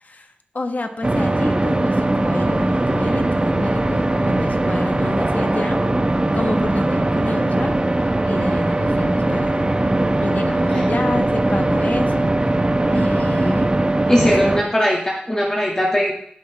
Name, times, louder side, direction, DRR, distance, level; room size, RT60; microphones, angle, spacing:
voice 1, 0.5-5.9 6.3-7.8 8.3-9.8 10.2-12.3 12.9-13.8 14.2-14.6, left 2 dB, 55° left, 5 dB, 1.4 m, -29 dB
sound 1, 1.0-14.6, right 2 dB, 30° right, 1.0 m, -20 dB
voice 2, 14.1-16.1, equal, 20° left, -3 dB, 2.2 m, -19 dB
16.5 x 5.9 x 3.5 m, 0.67 s
cardioid pair, 40°, 3 cm